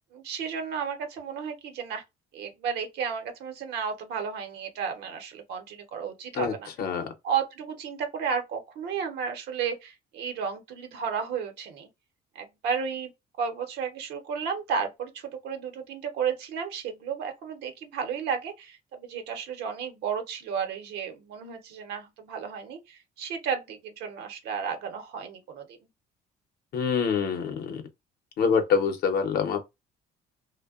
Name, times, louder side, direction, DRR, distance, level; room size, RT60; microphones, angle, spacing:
voice 1, 0.1-2.0 2.3-6.7 7.2-11.9 12.3-13.1 13.4-25.8, right 6 dB, 80° right, 0.8 m, -33 dB
voice 2, 6.3-7.1 26.7-27.8 28.4-29.6, left 6 dB, 65° left, 0.7 m, -26 dB
2.7 x 2.1 x 2.3 m
cardioid pair, 110°, 17 cm